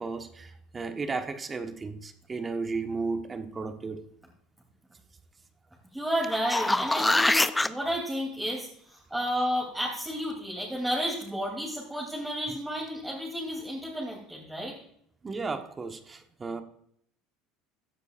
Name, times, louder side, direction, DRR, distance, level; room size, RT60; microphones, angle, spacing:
voice 1, 0.0-4.1 15.2-16.6, right 4 dB, 25° right, 1.4 m, -34 dB
voice 2, 5.9-14.7, equal, 5° right, 3.2 m, -32 dB
sound 1, 6.2-7.7 12.5-12.6, left 2 dB, 10° left, 0.5 m, -24 dB
16.0 x 10.0 x 2.6 m
hypercardioid pair, 75°, 0 cm